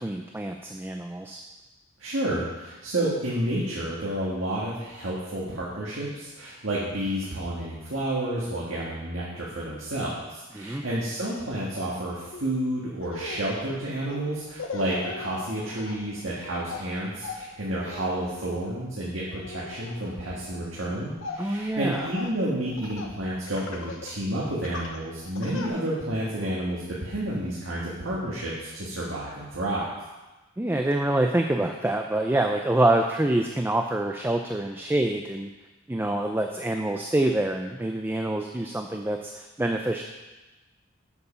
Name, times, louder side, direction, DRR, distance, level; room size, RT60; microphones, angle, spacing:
voice 1, 0.0-1.4 10.5-10.8 21.4-22.1 30.6-35.5 35.9-40.0, right 1 dB, 10° right, 3 dB, 0.5 m, -26 dB
voice 2, 2.0-29.9, right 1 dB, 70° right, -6 dB, 1.9 m, -30 dB
Laughter, 12.3-12.5 12.9-23.2 23.5-24.2 24.6-25.7, left 3 dB, 80° left, 1.1 m, -40 dB
8.1 x 7.7 x 5.7 m, 1.1 s
head